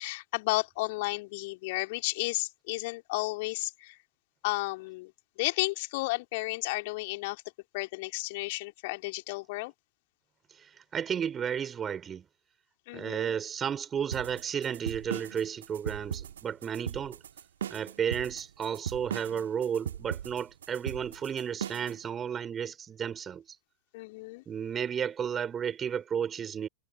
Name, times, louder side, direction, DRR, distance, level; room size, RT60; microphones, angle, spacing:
voice 1, 0.0-4.0 4.4-5.1 5.4-7.4 7.7-9.7 12.9-13.3 23.9-24.4, left 23 dB, 50° left, 2.9 m, -33 dB
voice 2, 10.6-12.3 12.9-17.2 17.7-23.4 24.5-26.7, right 8 dB, 25° right, 4.0 m, -33 dB
sound 1, 14.1-22.0, right 9 dB, 65° right, 2.0 m, -38 dB
figure-of-eight pair, 90°, 0 cm